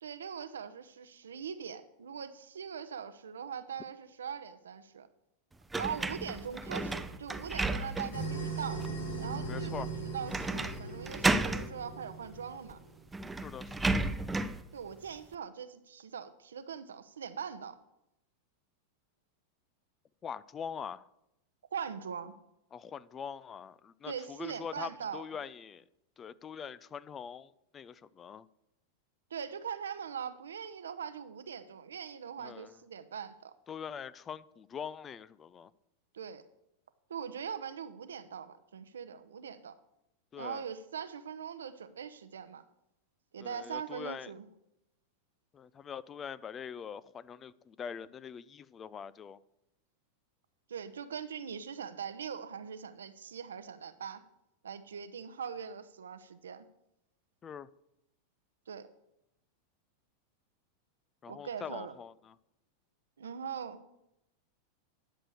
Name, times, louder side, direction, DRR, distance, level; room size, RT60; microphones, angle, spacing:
voice 1, 0.0-5.1 5.7-8.8 9.2-12.8 14.7-17.8 21.7-22.3 24.0-25.2 29.3-33.5 36.1-36.4 37.1-39.8 40.4-42.6 43.3-44.5 50.7-54.2 54.6-56.7 58.7-58.9 61.3-61.9 63.2-63.8, right 7 dB, 75° right, 0.8 m, -41 dB
sound 1, 5.7-8.3 8.8-8.9 10.3-10.8 11.0-11.7 12.7-12.8 13.1-14.6, right 2 dB, 10° right, 0.6 m, -32 dB
sound 2, 8.1-13.0, right 3 dB, 80° left, 2.8 m, -39 dB
voice 2, 9.5-9.9 13.4-14.1 20.2-21.0 22.7-25.8 26.2-28.4 32.4-32.7 33.7-35.7 40.3-40.6 43.4-44.3 45.5-49.4 57.4-57.7 61.2-62.3, left 7 dB, 25° left, 0.4 m, -43 dB
11.5 x 6.7 x 6.4 m
figure-of-eight pair, 90°, 0 cm